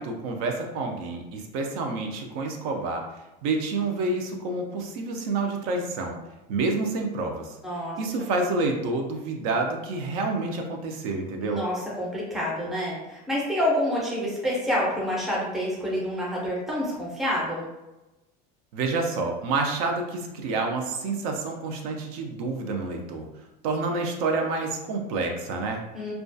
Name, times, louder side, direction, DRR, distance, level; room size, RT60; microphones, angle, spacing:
voice 1, 0.0-3.0 3.4-6.2 6.5-7.6 8.0-11.6 18.7-23.3 23.6-25.8, right 3 dB, 65° right, 2 dB, 0.4 m, -28 dB
voice 2, 7.6-8.0 11.4-17.7 25.9-26.1, equal, ahead, -5 dB, 0.5 m, -28 dB
2.3 x 2.2 x 2.5 m, 1.0 s
supercardioid pair, 160°, 21 cm